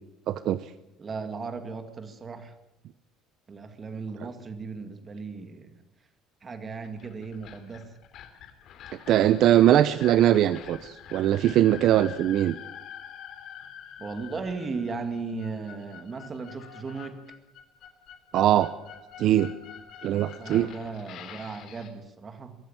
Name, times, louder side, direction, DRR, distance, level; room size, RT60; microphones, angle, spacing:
voice 1, 0.3-0.6 9.1-12.6 18.3-18.7 19.2-19.5 20.0-20.7, right 12 dB, 50° right, 14 dB, 0.7 m, -21 dB
voice 2, 1.0-2.5 3.5-5.7 6.4-7.9 14.0-17.2 20.4-22.6, right 4 dB, 20° right, 8 dB, 2.1 m, -36 dB
sound 1, 6.8-21.9, left 9 dB, 50° left, 3.1 m, -46 dB
23.0 x 14.0 x 8.8 m, 0.93 s
cardioid pair, 165°, 0 cm